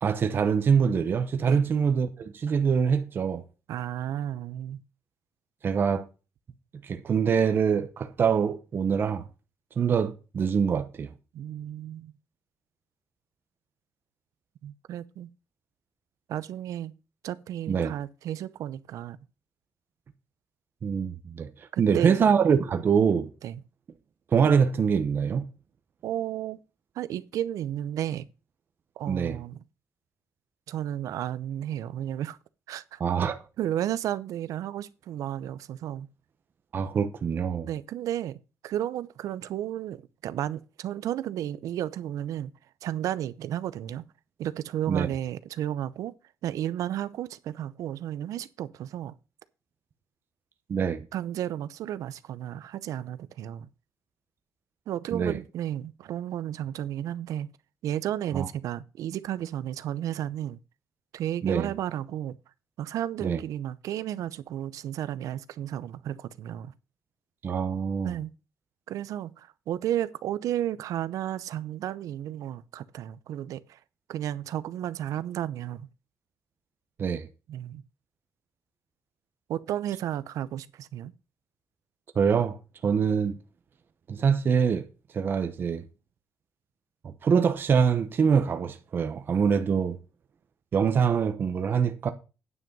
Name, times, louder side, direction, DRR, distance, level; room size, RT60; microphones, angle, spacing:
voice 1, 0.0-3.4 5.6-6.1 6.8-9.2 9.8-11.1 17.7-17.9 20.8-21.5 21.8-23.3 24.3-25.4 29.1-29.4 33.0-33.4 36.7-37.7 44.9-45.1 50.7-51.0 55.1-55.4 58.3-58.5 61.4-61.7 63.2-63.4 67.4-68.2 77.0-77.3 82.2-82.6 82.8-83.4 84.1-84.9 85.1-85.8 87.0-90.0 90.7-92.1, right 6 dB, 40° right, 1.0 m, -24 dB
voice 2, 3.7-4.8 11.3-12.1 14.6-15.3 16.3-16.9 17.2-19.2 21.7-22.2 22.5-22.6 23.4-23.6 26.0-26.6 27.0-28.3 29.0-29.6 30.7-32.4 32.7-36.1 37.6-38.4 38.6-42.5 42.8-44.0 44.4-46.1 46.4-49.1 51.1-53.7 54.9-57.5 57.8-60.6 61.1-62.4 62.8-66.7 68.0-68.3 68.9-73.8 74.1-75.9 77.5-77.8 79.5-81.1, right 11 dB, 85° right, 0.7 m, -33 dB
9.6 x 6.2 x 5.4 m
cardioid pair, 165°, 6 cm